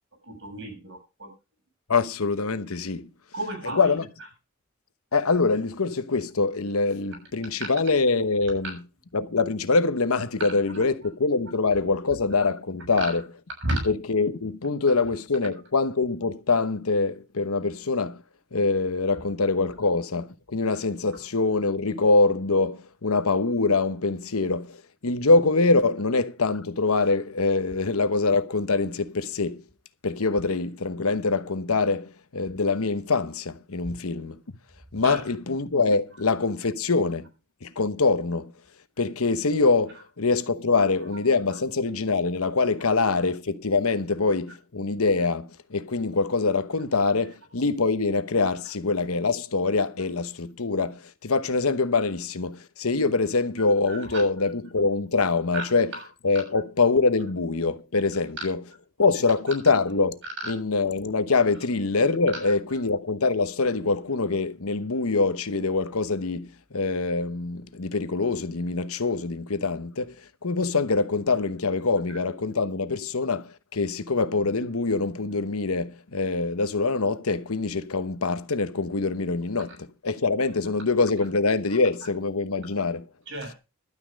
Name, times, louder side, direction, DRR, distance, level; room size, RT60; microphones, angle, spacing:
voice 1, 0.2-1.3 3.3-4.3 10.4-10.8 13.0-13.3 13.6-13.9 21.1-21.2 35.0-35.2 39.9-40.1 41.1-41.2 41.5-41.6 42.8-42.9 53.6-54.5 55.5-55.7 55.9-56.1 56.3-56.4 58.4-58.5 59.1-59.6 60.2-60.5 61.6-61.7 62.3-62.6 72.1-72.2 81.7-81.8 83.3-83.6, right 1 dB, 55° right, 6.9 m, -34 dB
voice 2, 1.9-3.1 3.7-4.0 5.1-8.8 9.1-13.2 13.9-18.2 18.5-29.6 30.0-34.4 34.9-37.3 37.6-38.5 39.0-55.9 56.2-58.6 59.0-60.1 60.5-70.1 70.4-83.1, left 3 dB, 80° left, 1.0 m, -24 dB
12.0 x 9.6 x 5.2 m
head